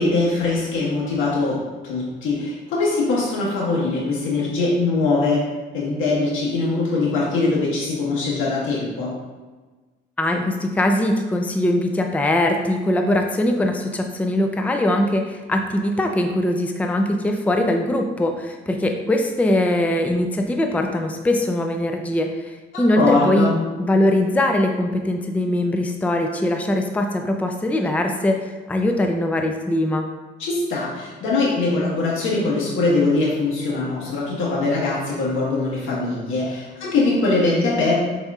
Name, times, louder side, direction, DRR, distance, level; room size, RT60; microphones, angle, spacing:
voice 1, 0.0-1.6 1.8-5.4 5.7-9.1 23.0-23.6 30.4-37.9, left 3 dB, 85° left, -5 dB, 1.4 m, -22 dB
voice 2, 10.2-23.5 23.8-30.1, left 1 dB, 5° left, 4 dB, 0.4 m, -21 dB
5.2 x 4.1 x 2.4 m, 1.3 s
cardioid pair, 90°, 20 cm